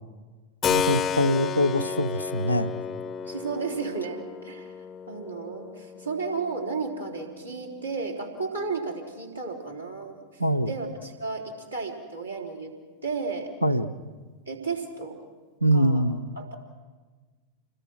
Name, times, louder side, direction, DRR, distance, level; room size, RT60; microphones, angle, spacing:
Keyboard (musical), 0.6-9.2, left 7 dB, 25° left, 0.7 m, -33 dB
voice 1, 0.7-2.7 10.4-10.7 13.6-13.9 15.6-16.2, equal, 90° left, 5 dB, 1.0 m, -23 dB
voice 2, 3.3-4.7 5.1-12.8 13.0-13.5 14.5-15.3 15.7-16.1 16.4-16.6, right 4 dB, 85° right, -3 dB, 3.7 m, -33 dB
28.0 x 21.0 x 6.2 m, 1.4 s
figure-of-eight pair, 90°, 0 cm